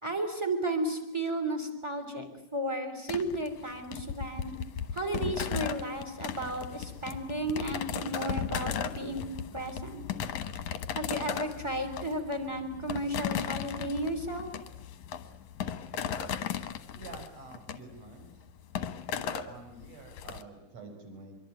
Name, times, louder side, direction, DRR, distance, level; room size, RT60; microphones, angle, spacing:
voice 1, 0.0-4.5 4.9-9.2 9.5-10.0 10.9-14.5, right 1 dB, 10° right, 6 dB, 3.0 m, -33 dB
sound 1, 3.1-20.4, left 8 dB, 65° left, 2.3 m, -36 dB
voice 2, 16.9-18.4 19.4-21.3, right 3 dB, 45° right, 4 dB, 5.9 m, -48 dB
25.0 x 23.0 x 9.3 m, 0.87 s
omnidirectional pair, 4.2 m